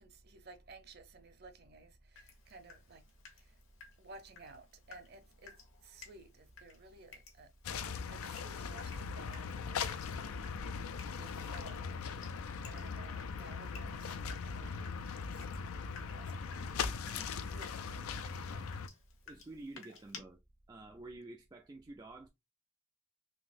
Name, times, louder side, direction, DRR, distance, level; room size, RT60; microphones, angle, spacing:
voice 1, 0.0-3.0 3.3-3.6 4.0-5.5 5.8-7.5 8.1-9.9 10.3-10.4 11.1-11.9 12.6-14.7 15.2-15.5 16.0-16.5 17.2-17.8 18.3-18.7, right 3 dB, 50° right, 0.7 m, -55 dB
Water tap faucet / Drip, 2.2-20.2, left 5 dB, 70° left, 1.1 m, -57 dB
sound 1, 7.6-18.9, left 5 dB, 85° left, 0.4 m, -40 dB
voice 2, 19.3-20.4 20.7-22.3, right 2 dB, 20° right, 0.3 m, -50 dB
3.8 x 2.8 x 2.5 m
head